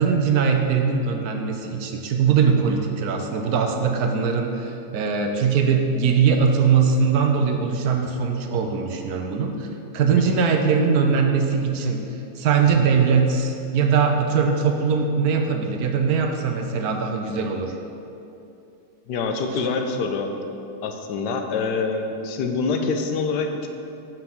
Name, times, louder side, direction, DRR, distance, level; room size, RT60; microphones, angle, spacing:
voice 1, 0.0-9.7 9.9-12.0 12.4-17.8, right 6 dB, 70° right, 4 dB, 1.1 m, -21 dB
voice 2, 19.1-20.3 20.8-23.7, left 4 dB, 85° left, 4 dB, 1.2 m, -25 dB
5.9 x 5.3 x 6.0 m, 2.8 s
omnidirectional pair, 1.8 m